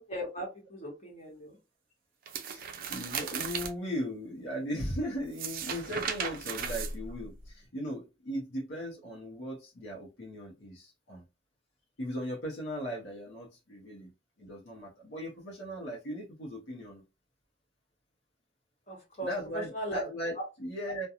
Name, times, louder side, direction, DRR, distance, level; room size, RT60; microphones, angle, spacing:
voice 1, 0.0-1.6 18.9-20.0 20.3-20.4, equal, 35° left, 1.2 m, -38 dB
sound 1, 2.3-3.7 5.2-7.5, right 6 dB, 50° right, 0.4 m, -36 dB
voice 2, 2.5-11.2 12.0-14.1 14.4-17.0 19.2-20.4 20.6-21.1, equal, 65° left, 0.7 m, -38 dB
2.4 x 2.2 x 2.8 m
head